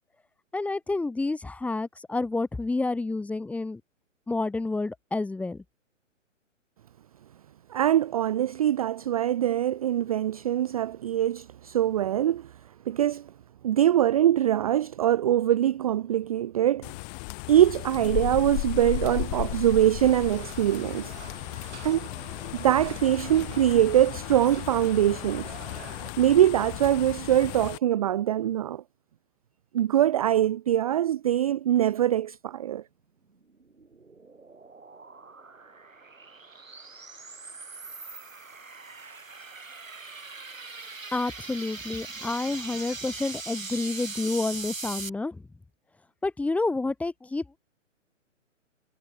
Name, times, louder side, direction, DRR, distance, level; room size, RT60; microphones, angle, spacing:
voice 1, 0.5-3.8 4.3-5.6 41.1-45.4 46.2-47.6, left 3 dB, 5° left, 1.3 m, -29 dB
voice 2, 7.7-12.5 12.9-13.3 13.6-16.9 17.5-21.1 21.8-22.1 22.6-25.5 26.2-28.8 29.7-32.8, right 11 dB, 30° right, 0.5 m, -23 dB
sound 1, 16.8-27.8, left 34 dB, 25° left, 1.7 m, -35 dB
sound 2, 20.0-26.1, right 8 dB, 60° right, 3.9 m, -46 dB
sound 3, 33.4-45.1, right 4 dB, 85° right, 1.9 m, -41 dB
figure-of-eight pair, 125°, 39 cm